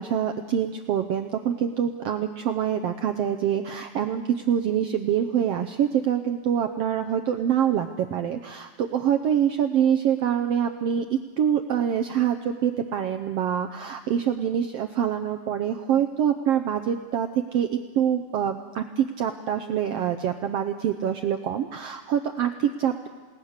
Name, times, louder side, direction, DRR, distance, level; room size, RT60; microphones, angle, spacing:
voice 1, 0.0-17.7 17.9-23.1, right 9 dB, 80° right, 7 dB, 1.4 m, -25 dB
28.5 x 19.0 x 6.6 m, 1.4 s
omnidirectional pair, 3.8 m